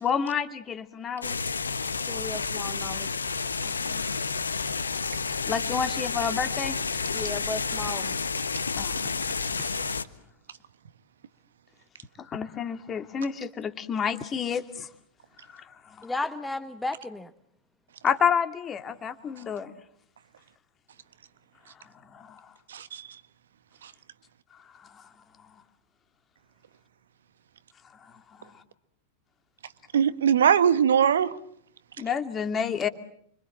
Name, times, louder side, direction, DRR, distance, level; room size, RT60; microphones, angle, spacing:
voice 1, 0.0-1.4 3.6-4.0 5.5-6.8 8.8-9.1 12.2-14.9 15.5-15.6 16.0-16.1 18.0-19.7 22.1-22.4 32.0-32.9, left 7 dB, 25° left, 2.5 m, -29 dB
sound 1, 1.2-10.0, left 5 dB, 75° left, 1.3 m, -30 dB
voice 2, 2.1-3.1 7.1-8.1 16.0-17.3, left 2 dB, 5° left, 1.2 m, -34 dB
voice 3, 22.7-23.0 29.9-31.3, right 8 dB, 65° right, 1.4 m, -21 dB
29.5 x 25.0 x 7.6 m
figure-of-eight pair, 90°, 0 cm